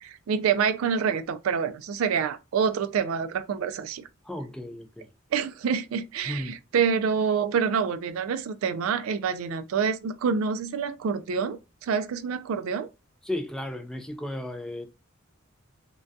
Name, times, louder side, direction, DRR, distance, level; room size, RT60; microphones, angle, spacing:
voice 1, 0.0-4.0 5.3-12.9, right 6 dB, 80° right, 0.3 m, -27 dB
voice 2, 4.3-5.1 6.3-6.6 13.2-14.9, left 1 dB, 5° left, 0.3 m, -34 dB
2.2 x 2.2 x 2.6 m
head